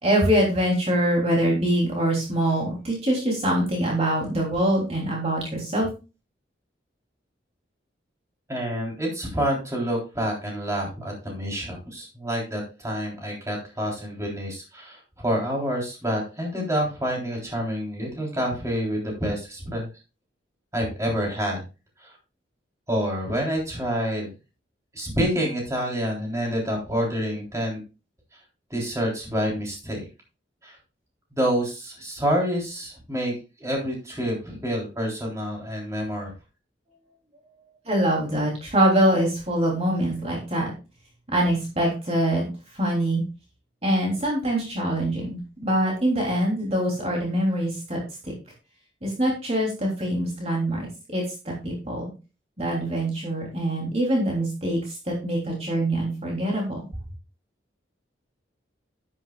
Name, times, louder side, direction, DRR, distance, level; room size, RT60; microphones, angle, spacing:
voice 1, 0.0-5.9 37.9-40.7 41.3-43.2 43.8-48.3 49.0-52.0 52.6-56.8, right 1 dB, 35° right, -2 dB, 3.2 m, -24 dB
voice 2, 8.5-19.9 20.7-21.6 22.0-22.1 22.9-24.3 24.9-27.8 28.3-28.4 28.7-30.1 30.6-30.8 31.3-36.3, equal, 15° right, -2 dB, 3.6 m, -28 dB
11.0 x 10.5 x 2.4 m, 0.30 s
head